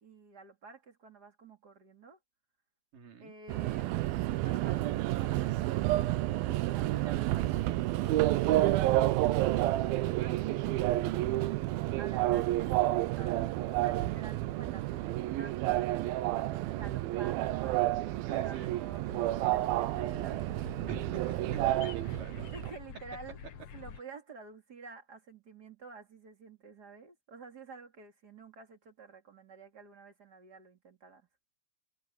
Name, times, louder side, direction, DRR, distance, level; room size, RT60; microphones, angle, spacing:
voice 1, 0.0-2.2 3.2-4.0 4.4-11.5 12.0-19.0 19.3-20.9 22.5-23.4 23.7-31.3, right 4 dB, 30° right, 3.1 m, -51 dB
voice 2, 2.9-3.3 18.2-18.7 20.9-21.2 21.5-22.5, right 6 dB, 65° right, 4.8 m, -45 dB
Subway metro underground, 3.5-22.7, right 16 dB, 90° right, 2.7 m, -30 dB
sound 1, 19.0-24.0, left 7 dB, 55° left, 2.1 m, -48 dB
omnidirectional pair, 4.1 m